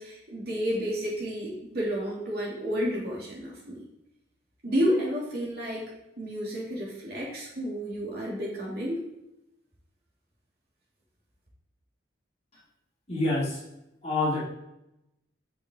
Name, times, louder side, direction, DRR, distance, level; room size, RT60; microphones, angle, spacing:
voice 1, 0.0-3.8 4.6-5.9 6.2-9.0, equal, 55° right, -5 dB, 2.9 m, -31 dB
voice 2, 13.1-13.6 14.0-14.5, left 2 dB, 35° left, -6 dB, 2.7 m, -27 dB
8.7 x 6.3 x 3.9 m, 0.86 s
head